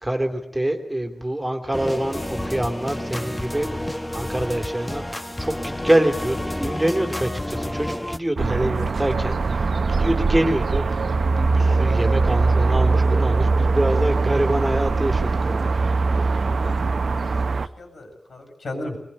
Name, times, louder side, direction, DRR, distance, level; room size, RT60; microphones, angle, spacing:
voice 1, 0.0-9.7 10.0-10.9 11.2-15.7, right 1 dB, 10° right, 4 dB, 2.7 m, -25 dB
sound 1, 1.7-8.2, left 1 dB, 15° left, 1.2 m, -30 dB
sound 2, 8.4-17.7, right 3 dB, 65° right, 0.9 m, -21 dB
voice 2, 16.6-19.0, left 1 dB, 70° left, 4 dB, 8.0 m, -36 dB
22.5 x 21.0 x 8.5 m, 0.78 s
wide cardioid pair, 80°, 0 cm